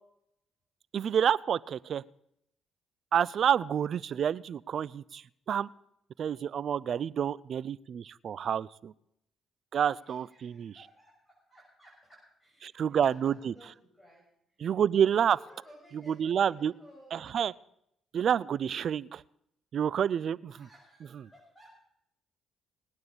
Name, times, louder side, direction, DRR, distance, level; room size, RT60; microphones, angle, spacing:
voice 1, 0.9-2.0 3.1-5.2 5.5-5.7 6.2-8.9 9.7-10.7 12.6-13.5 14.6-15.4 16.1-16.7 17.1-17.5 18.1-19.2 19.7-20.5, right 8 dB, 60° right, 21 dB, 0.5 m, -28 dB
voice 2, 9.9-14.2 14.5-14.7 15.3-17.3 20.5-21.8, equal, 15° left, -3 dB, 7.1 m, -57 dB
19.5 x 9.7 x 7.1 m, 0.75 s
supercardioid pair, 60°, 0 cm